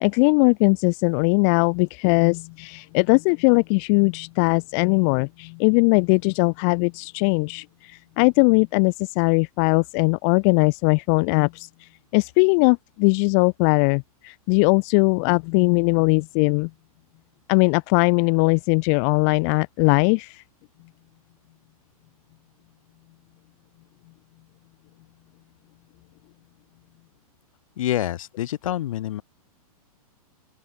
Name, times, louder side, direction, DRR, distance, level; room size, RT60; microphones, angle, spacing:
voice 1, 0.0-11.7 12.1-16.7 17.5-20.4, left 40 dB or more, 25° left, 0.4 m, -20 dB
voice 2, 27.8-29.2, left 12 dB, 60° left, 2.0 m, -27 dB
open air
hypercardioid pair, 155°, 19 cm